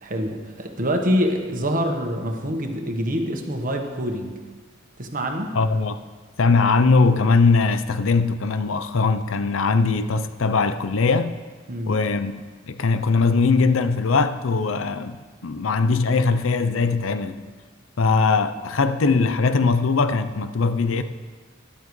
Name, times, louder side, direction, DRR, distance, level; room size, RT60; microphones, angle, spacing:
voice 1, 0.0-4.4 5.0-5.5 11.7-11.9, equal, 45° right, 1.2 m, -25 dB
voice 2, 5.5-6.0 6.4-11.3 11.9-12.3 12.7-17.5 18.0-21.0, left 4 dB, 70° left, 0.6 m, -20 dB
13.5 x 11.0 x 3.2 m
head